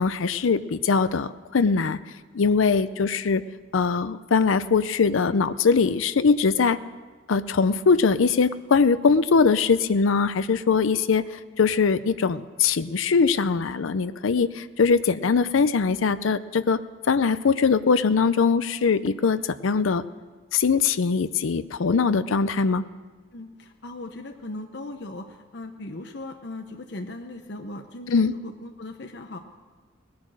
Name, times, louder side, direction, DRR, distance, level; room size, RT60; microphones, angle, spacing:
voice 1, 0.0-2.0 2.3-3.4 3.7-6.8 7.3-16.8 17.1-20.0 20.5-22.8 28.1-28.3, left 5 dB, 90° left, 14 dB, 0.5 m, -21 dB
voice 2, 23.3-29.4, left 2 dB, 60° left, 5 dB, 0.8 m, -38 dB
19.0 x 10.5 x 6.3 m, 1.4 s
head